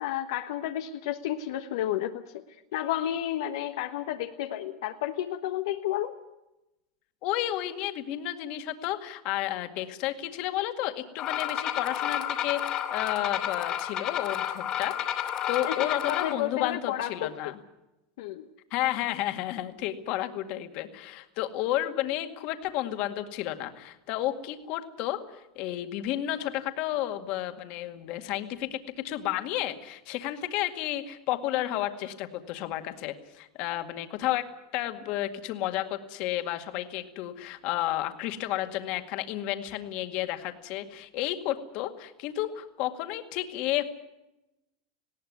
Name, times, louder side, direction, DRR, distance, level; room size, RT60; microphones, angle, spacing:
voice 1, 0.0-2.4 2.7-6.1 15.7-15.8 16.1-17.3 18.2-18.5, left 12 dB, 75° left, 5 dB, 1.3 m, -31 dB
voice 2, 7.2-15.0 15.2-17.6 18.7-28.8 29.0-34.4 34.7-43.8, left 14 dB, 50° left, 7 dB, 2.1 m, -32 dB
sound 1, 11.2-16.3, left 10 dB, 35° left, 2.5 m, -31 dB
19.5 x 17.5 x 9.6 m, 0.93 s
supercardioid pair, 145°, 2 cm